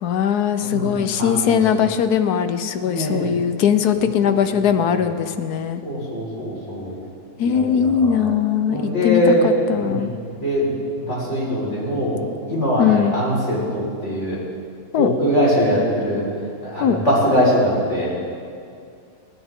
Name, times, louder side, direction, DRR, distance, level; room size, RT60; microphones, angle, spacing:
voice 1, 0.0-5.8 7.4-10.1 12.8-13.1 14.9-15.1 16.8-17.0, left 8 dB, 80° left, 9 dB, 1.3 m, -20 dB
voice 2, 0.6-0.9 1.2-1.6 2.8-3.3 4.0-4.1 4.9-5.0 5.8-6.9 7.4-8.3 8.7-9.5 9.8-10.1 10.4-12.2 12.5-14.4 14.9-16.2 16.6-18.1, equal, 45° left, -6 dB, 5.0 m, -22 dB
30.0 x 10.5 x 3.7 m, 2.4 s
omnidirectional pair, 1.7 m